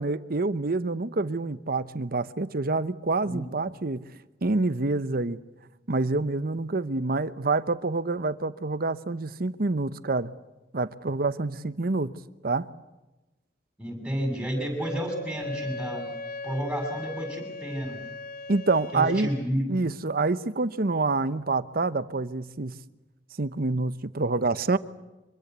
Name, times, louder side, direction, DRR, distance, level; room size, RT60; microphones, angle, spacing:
voice 1, 0.0-4.0 4.4-5.4 5.9-10.3 10.7-12.1 12.4-12.7 18.5-19.3 19.7-22.7 23.4-24.8, right 3 dB, 55° right, 14 dB, 0.9 m, -27 dB
voice 2, 13.8-16.0 16.4-18.0 18.9-19.7, equal, 5° right, 2 dB, 7.3 m, -30 dB
Wind instrument woodwind instrument, 14.8-19.5, left 2 dB, 55° left, 1.3 m, -38 dB
25.5 x 22.0 x 8.1 m, 1.1 s
head